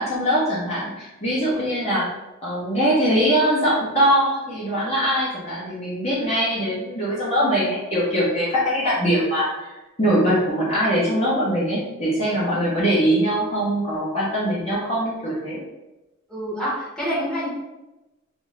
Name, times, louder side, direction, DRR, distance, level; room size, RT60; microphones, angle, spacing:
voice 1, 0.0-2.0 2.4-9.7 10.0-15.6, equal, 30° left, -8 dB, 0.8 m, -22 dB
voice 2, 16.3-17.5, equal, 5° left, -9 dB, 1.0 m, -27 dB
2.7 x 2.5 x 3.2 m, 1.0 s
head